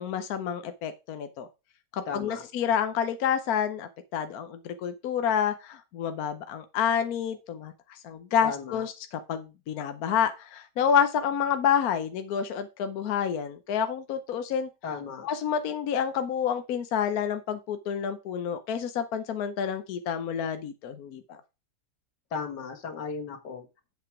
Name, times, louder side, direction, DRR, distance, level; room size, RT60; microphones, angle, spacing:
voice 1, 0.0-1.5 1.9-14.7 15.2-21.4, left 8 dB, 65° left, 9 dB, 1.2 m, -29 dB
voice 2, 2.1-2.4 8.4-8.9 14.8-15.3 22.3-23.7, left 5 dB, 80° left, 5 dB, 2.2 m, -35 dB
8.0 x 5.8 x 4.7 m, 0.27 s
omnidirectional pair, 1.8 m